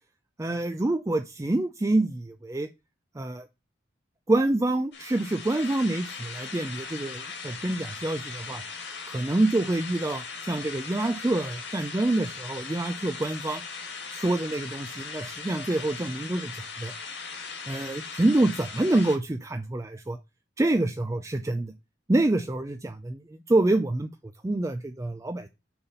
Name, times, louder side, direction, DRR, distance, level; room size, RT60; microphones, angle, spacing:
voice 1, 0.4-2.7 3.2-3.5 4.3-8.6 9.1-13.6 14.1-16.9 17.7-20.2 20.6-21.7 22.1-23.2 23.5-24.1 24.4-25.5, right 2 dB, 15° right, 8 dB, 0.4 m, -26 dB
sound 1, 4.9-19.2, left 5 dB, 65° left, 2.3 m, -39 dB
6.9 x 4.1 x 5.4 m, 0.25 s
head